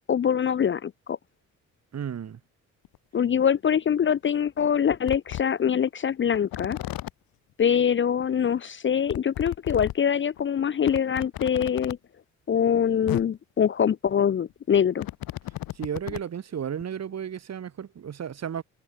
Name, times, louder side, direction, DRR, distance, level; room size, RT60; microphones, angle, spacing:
voice 1, 0.1-1.2 3.1-6.8 7.6-12.0 12.5-15.1, left 8 dB, 35° left, 0.6 m, -24 dB
voice 2, 1.9-2.4 15.7-18.6, right 8 dB, 45° right, 1.9 m, -33 dB
sound 1, 2.8-3.0 4.0-4.1 4.6-4.7 5.1-5.4 6.3-7.1 8.2-8.3 8.5-8.6 9.1-9.9 10.4-10.5 10.8-11.9 12.8-12.9 13.1-13.2 14.5-16.3 16.8-16.9, left 16 dB, 75° left, 1.9 m, -34 dB
supercardioid pair, 70°, 35 cm